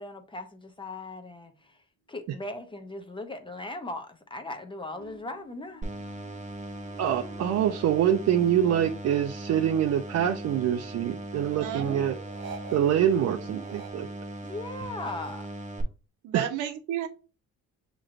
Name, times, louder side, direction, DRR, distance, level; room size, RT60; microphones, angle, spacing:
voice 1, 0.0-1.8 2.1-5.9 14.4-15.5, left 2 dB, 15° left, 0.6 m, -38 dB
sound 1, 4.9-8.8 9.2-10.7 12.3-13.9, right 5 dB, 40° right, 1.2 m, -48 dB
sound 2, 5.8-15.8, right 1 dB, 25° right, 0.8 m, -39 dB
voice 2, 7.0-12.1 12.7-14.1 16.3-16.5, right 10 dB, 60° right, 0.5 m, -25 dB
voice 3, 11.6-12.4 13.5-13.6 16.2-17.1, right 10 dB, 90° right, 0.7 m, -34 dB
6.0 x 3.0 x 2.5 m
cardioid pair, 90°, 30 cm